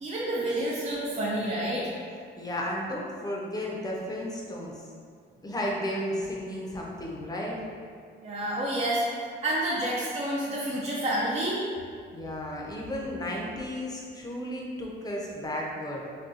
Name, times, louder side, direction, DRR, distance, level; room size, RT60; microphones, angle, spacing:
voice 1, 0.0-1.9 8.2-9.0 9.4-11.6, right 1 dB, 35° right, -6 dB, 0.5 m, -29 dB
voice 2, 2.4-4.8 5.4-7.6 12.1-16.0, left 1 dB, 20° left, -3 dB, 0.6 m, -33 dB
4.0 x 2.2 x 2.5 m, 2.2 s
cardioid pair, 90°, 20 cm